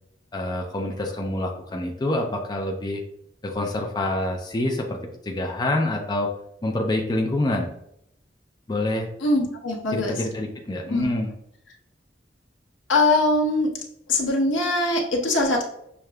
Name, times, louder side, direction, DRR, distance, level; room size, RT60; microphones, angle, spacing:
voice 1, 0.3-3.0 3.4-5.0 5.3-6.3 6.6-7.7 8.7-9.1 9.9-11.3, left 1 dB, 20° left, 1 dB, 0.4 m, -26 dB
voice 2, 9.2-10.2 10.8-11.1 12.9-13.7 14.1-15.6, left 2 dB, 90° left, -1 dB, 0.9 m, -22 dB
6.3 x 2.3 x 2.2 m, 0.75 s
head